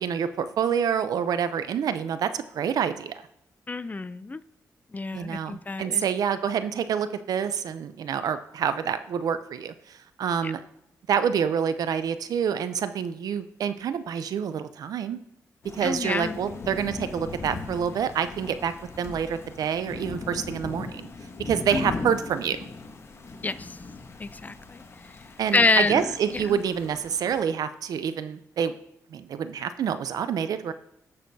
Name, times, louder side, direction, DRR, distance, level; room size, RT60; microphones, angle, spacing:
voice 1, 0.0-3.2 5.1-10.6 11.1-15.2 15.7-21.1 21.5-22.6 25.4-28.7 29.1-30.7, right 7 dB, 75° right, 12 dB, 0.6 m, -27 dB
voice 2, 3.7-4.4 4.9-6.0 10.4-10.5 15.8-16.4 21.7-21.9 23.4-23.8 24.2-24.8 25.5-26.1 26.3-26.6, left 3 dB, 25° left, 15 dB, 0.5 m, -27 dB
Thunder / Rain, 15.6-27.4, left 3 dB, 45° left, 1.3 m, -39 dB
18.5 x 6.4 x 2.8 m, 0.81 s
cardioid pair, 75°, 6 cm